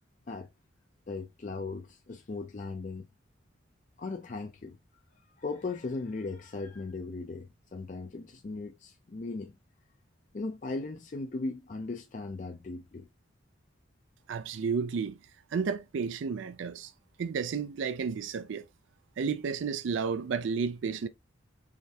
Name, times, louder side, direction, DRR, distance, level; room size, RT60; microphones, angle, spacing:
voice 1, 1.1-3.1 4.0-4.8 5.4-9.6 10.3-13.1, left 3 dB, 40° left, 0.4 m, -38 dB
voice 2, 14.3-15.2 15.5-16.9 17.2-18.6 19.2-21.1, right 5 dB, 75° right, 0.4 m, -32 dB
4.9 x 3.2 x 2.8 m
head